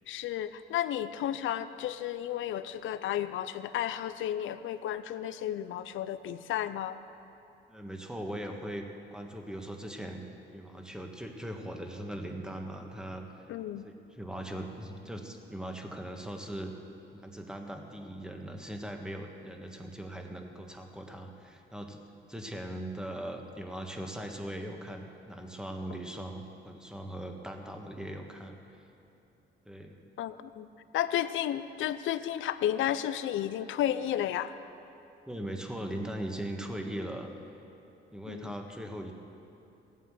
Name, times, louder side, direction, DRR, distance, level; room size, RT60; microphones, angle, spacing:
voice 1, 0.1-7.0 13.5-13.9 30.2-30.7 30.9-34.5 38.3-38.5, left 11 dB, 80° left, 13 dB, 0.6 m, -32 dB
voice 2, 7.7-10.2 10.5-13.3 13.8-16.7 17.1-22.0 22.3-28.6 29.7-30.0 35.3-37.3 38.1-39.1, right 1 dB, 5° right, 3 dB, 1.6 m, -40 dB
16.0 x 9.4 x 7.8 m, 2.8 s
cardioid pair, 90°, 20 cm